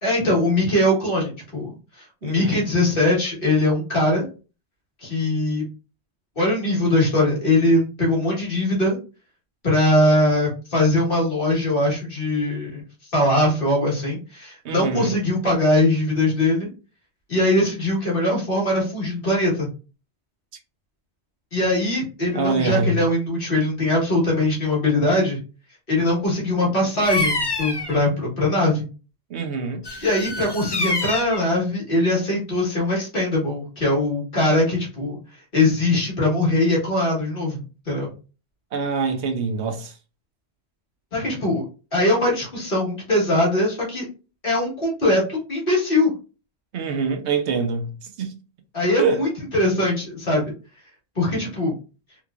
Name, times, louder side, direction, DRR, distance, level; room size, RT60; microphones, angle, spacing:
voice 1, 0.0-4.2 5.0-5.6 6.3-9.0 9.6-12.8 13.1-16.7 17.3-19.7 21.5-25.4 25.9-28.9 30.0-35.2 35.5-38.1 41.1-41.6 41.9-44.0 44.4-46.1 48.7-50.5 51.1-51.7, left 1 dB, 55° left, 1.7 m, -21 dB
voice 2, 2.2-2.6 14.6-15.2 22.3-23.0 29.3-29.8 38.7-39.9 46.7-48.4 49.0-49.2, right 4 dB, 85° right, 1.0 m, -24 dB
Bird vocalization bird call bird song, 27.0-28.0 29.8-31.4, left 2 dB, 30° left, 0.5 m, -26 dB
3.6 x 3.1 x 2.4 m
omnidirectional pair, 1.1 m